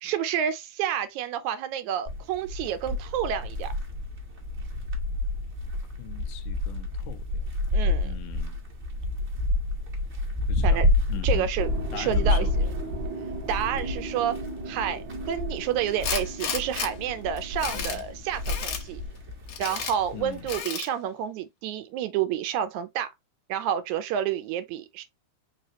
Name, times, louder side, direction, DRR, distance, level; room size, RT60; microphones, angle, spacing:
voice 1, 0.0-3.7 7.7-8.1 10.6-10.9 11.2-12.5 13.5-14.4 14.7-19.0 19.6-23.1 23.5-25.0, right 9 dB, 80° right, 1.8 m, -29 dB
sound 1, 2.1-20.6, left 2 dB, 35° right, 1.2 m, -29 dB
voice 2, 6.0-7.5 8.0-8.6 10.5-10.8 11.1-11.5 11.9-12.5 17.7-18.1 20.1-20.5, left 14 dB, 90° left, 2.1 m, -41 dB
sound 2, 11.6-19.1, right 4 dB, 60° right, 1.2 m, -39 dB
Tools, 16.0-16.9 17.4-18.0 18.4-18.8 19.5-19.9 20.5-20.9, left 7 dB, 65° left, 1.3 m, -32 dB
4.7 x 3.2 x 2.9 m
omnidirectional pair, 3.7 m